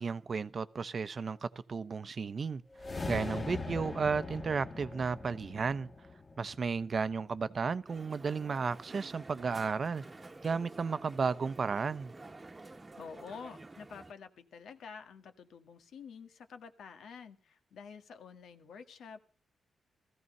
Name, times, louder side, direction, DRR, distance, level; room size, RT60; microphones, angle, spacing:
voice 1, 0.0-2.6 3.1-5.9 6.4-10.0 10.4-12.1, right 5 dB, 40° right, 0.8 m, -33 dB
sound 1, 2.7-7.1, left 3 dB, 25° left, 1.3 m, -41 dB
Crowd, 7.9-14.1, right 2 dB, 20° right, 1.3 m, -50 dB
voice 2, 13.0-19.2, left 6 dB, 80° left, 1.8 m, -49 dB
17.0 x 15.0 x 5.5 m
wide cardioid pair, 140°, 0 cm